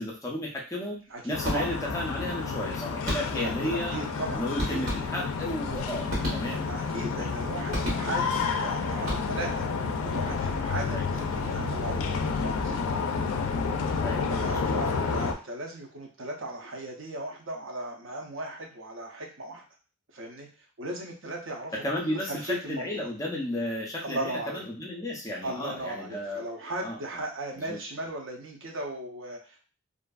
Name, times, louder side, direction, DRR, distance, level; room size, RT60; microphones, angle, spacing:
voice 1, 0.0-4.0 4.3-6.7 7.1-7.3 10.9-11.0 14.0-14.8 21.8-26.4 26.8-27.0 27.6-27.8, left 1 dB, 15° left, -2 dB, 0.4 m, -33 dB
voice 2, 1.1-1.7 3.3-4.9 6.6-9.7 10.0-12.8 14.3-19.6 20.1-20.5 20.8-23.1 24.0-24.6 25.4-29.6, right 1 dB, 65° right, 1 dB, 0.6 m, -37 dB
sound 1, 1.3-15.3, left 5 dB, 85° left, 0.3 m, -30 dB
sound 2, 1.4-2.0 3.1-3.6 4.6-5.4 6.1-6.9 7.7-8.4 8.9-9.6, equal, 85° right, 1.3 m, -33 dB
2.5 x 2.4 x 2.3 m, 0.36 s
head